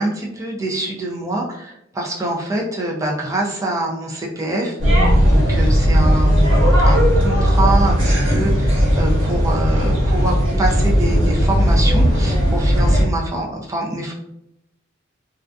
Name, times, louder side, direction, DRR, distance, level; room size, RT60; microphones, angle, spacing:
voice 1, 0.0-14.1, right 2 dB, 15° right, -2 dB, 0.4 m, -25 dB
sound 1, 4.8-13.0, equal, 75° right, 1.3 m, -16 dB
2.4 x 2.2 x 2.5 m, 0.79 s
head